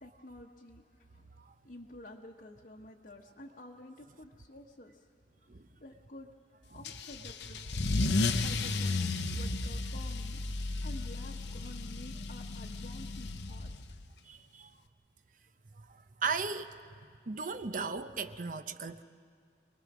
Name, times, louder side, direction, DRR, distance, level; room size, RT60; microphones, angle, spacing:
voice 1, 0.0-0.8 1.1-1.3 1.6-5.1 5.8-6.3 6.7-7.8 8.4-10.4 10.8-14.0, left 1 dB, 50° left, -1 dB, 1.1 m, -50 dB
Car / Engine starting / Accelerating revving vroom, 6.8-14.0, left 2 dB, 75° left, 0.9 m, -33 dB
voice 2, 14.3-14.7 15.9-16.8 17.3-19.0, right 4 dB, 45° right, 10 dB, 0.7 m, -36 dB
27.0 x 20.5 x 6.1 m, 2.2 s
head